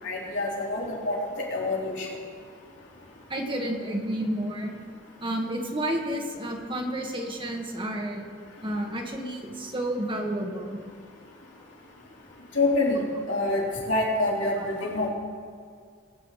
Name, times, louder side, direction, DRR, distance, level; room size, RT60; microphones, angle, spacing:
voice 1, 0.0-2.1 12.6-15.1, left 2 dB, 75° left, -4 dB, 3.6 m, -27 dB
voice 2, 3.3-4.7 5.2-8.3 8.6-10.8 14.6-14.7, right 1 dB, 25° right, 1 dB, 1.5 m, -31 dB
21.5 x 8.6 x 4.9 m, 2.2 s
head